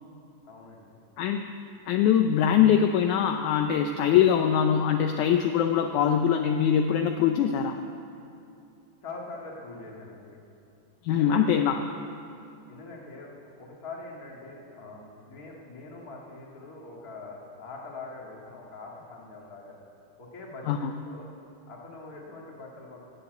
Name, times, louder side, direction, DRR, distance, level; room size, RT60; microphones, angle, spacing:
voice 1, 0.4-0.9 9.0-10.4 11.1-11.7 12.7-13.3 13.6-19.8 20.2-21.3 21.7-23.0, left 3 dB, 30° left, -2 dB, 2.1 m, -43 dB
voice 2, 1.9-7.8 11.0-11.8 20.7-20.9, left 8 dB, 80° left, 6 dB, 1.9 m, -23 dB
19.0 x 7.1 x 8.0 m, 2.6 s
omnidirectional pair, 3.7 m